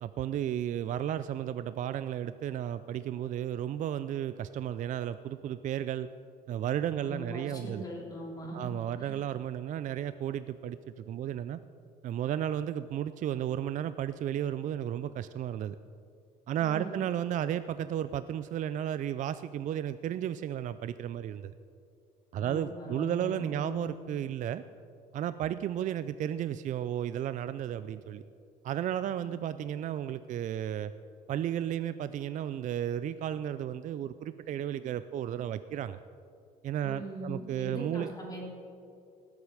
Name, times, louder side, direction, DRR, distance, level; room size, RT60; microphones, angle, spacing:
voice 1, 0.0-6.1 6.5-7.8 8.5-11.6 12.0-15.8 16.5-21.5 22.3-24.6 25.1-28.2 28.6-30.9 31.3-36.0 36.6-38.1, right 10 dB, 50° right, 13 dB, 0.4 m, -33 dB
voice 2, 6.9-8.7 9.0-9.1 16.6-17.0 22.4-23.8 29.2-29.4 36.8-38.5, equal, 20° left, -3 dB, 3.6 m, -41 dB
18.0 x 8.4 x 4.9 m, 2.5 s
cardioid pair, 110°, 17 cm